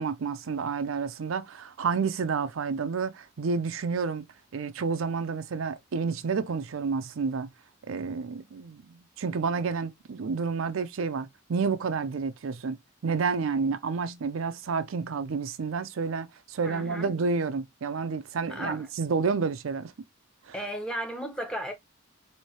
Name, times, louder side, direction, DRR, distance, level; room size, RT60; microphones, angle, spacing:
voice 1, 0.0-4.2 4.5-7.5 7.9-12.8 13.0-19.9 20.4-20.6, right 5 dB, 80° right, 0.5 m, -30 dB
voice 2, 16.6-17.1 18.5-18.9 20.5-21.7, equal, 5° left, 0.8 m, -35 dB
4.4 x 2.7 x 3.1 m
head